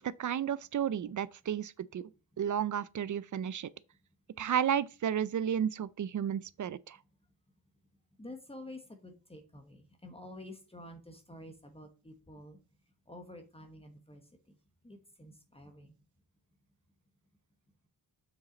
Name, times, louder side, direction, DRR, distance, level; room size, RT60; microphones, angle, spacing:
voice 1, 0.0-2.0 2.4-3.7 4.4-7.0, right 9 dB, 50° right, 0.5 m, -32 dB
voice 2, 8.2-12.6 13.1-14.2 14.5-14.6 14.8-16.0, left 1 dB, 15° left, 1.2 m, -49 dB
7.4 x 6.3 x 3.9 m
wide cardioid pair, 155°, 39 cm